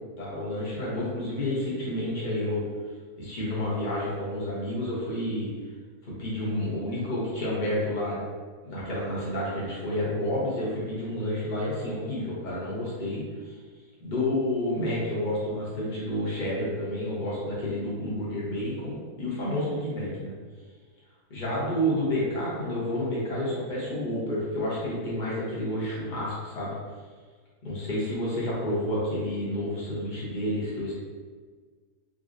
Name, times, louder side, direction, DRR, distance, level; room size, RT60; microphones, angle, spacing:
voice 1, 0.2-2.7 3.2-5.5 6.0-8.2 8.6-13.5 14.0-20.3 21.3-26.7 27.6-30.9, left 1 dB, 40° left, -7 dB, 0.8 m, -30 dB
3.7 x 2.0 x 2.5 m, 1.5 s
omnidirectional pair, 1.6 m